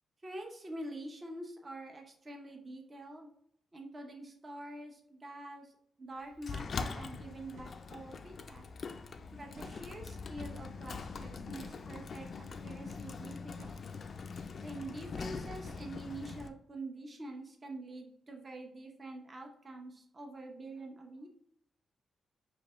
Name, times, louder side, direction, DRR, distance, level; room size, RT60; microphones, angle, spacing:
voice 1, 0.2-3.3 3.7-5.7 6.0-8.7 9.3-13.8 14.6-21.3, right 1 dB, 25° right, 2 dB, 0.6 m, -46 dB
Sliding door, 6.4-16.5, left 4 dB, 45° left, 0.3 m, -43 dB
sound 1, 7.5-7.9 9.1-9.2 9.5-10.3 11.6-12.4 13.1-14.0 15.6-16.3, right 2 dB, 80° right, 0.7 m, -56 dB
5.0 x 2.9 x 3.0 m, 0.69 s
wide cardioid pair, 145°, 0 cm